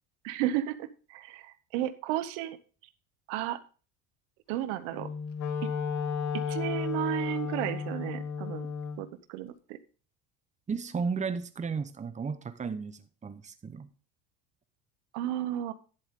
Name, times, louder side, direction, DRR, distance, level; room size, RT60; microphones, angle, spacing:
voice 1, 0.2-2.6 3.3-3.6 4.5-5.1 5.6-5.7 6.3-8.7 9.0-9.8 15.1-15.7, right 13 dB, 80° right, 1.0 m, -33 dB
Wind instrument woodwind instrument, 4.9-9.0, left 6 dB, 55° left, 1.4 m, -33 dB
voice 2, 10.7-13.9, right 5 dB, 20° right, 0.9 m, -34 dB
10.5 x 7.5 x 3.7 m
supercardioid pair, 100°, 36 cm